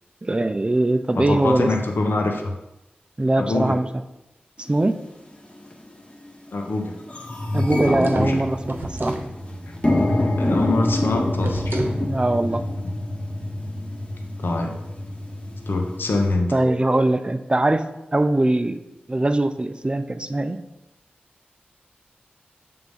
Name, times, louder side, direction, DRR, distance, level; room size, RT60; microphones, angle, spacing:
voice 1, 0.2-1.7 3.2-3.9 4.7-5.0 7.5-9.2 12.0-12.6 16.5-18.8 19.1-20.6, right 2 dB, 25° right, 10 dB, 0.5 m, -21 dB
voice 2, 1.1-2.5 3.4-3.8 6.5-6.9 7.8-8.4 10.4-11.8 14.4-14.7 15.7-16.5, left 2 dB, 75° left, 2 dB, 0.9 m, -24 dB
sound 1, 4.7-4.8 5.6-5.8 6.2-6.3 6.6-16.3, left 1 dB, 30° left, 1.2 m, -26 dB
sound 2, 7.6-9.3 11.4-12.0, right 2 dB, 65° right, 0.9 m, -30 dB
6.7 x 3.5 x 5.3 m, 0.96 s
cardioid pair, 45°, 4 cm